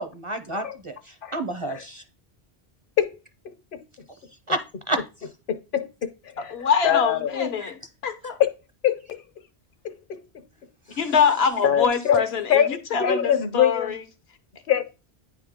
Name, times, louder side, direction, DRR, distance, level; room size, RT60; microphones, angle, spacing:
voice 1, 0.0-2.0 4.5-4.6 4.9-5.0 7.6-7.7 10.9-11.0, right 1 dB, 40° right, 0.5 m, -30 dB
voice 2, 5.5-6.1 6.4-6.5 6.8-7.5 8.4-8.5 8.8-9.2 9.8-10.2 11.6-12.2 12.5-14.0 14.7-14.8, left 9 dB, 60° left, 0.8 m, -23 dB
voice 3, 6.5-7.8 8.0-8.4 11.0-14.0, left 6 dB, 80° left, 1.1 m, -24 dB
9.2 x 3.6 x 3.6 m
omnidirectional pair, 1.0 m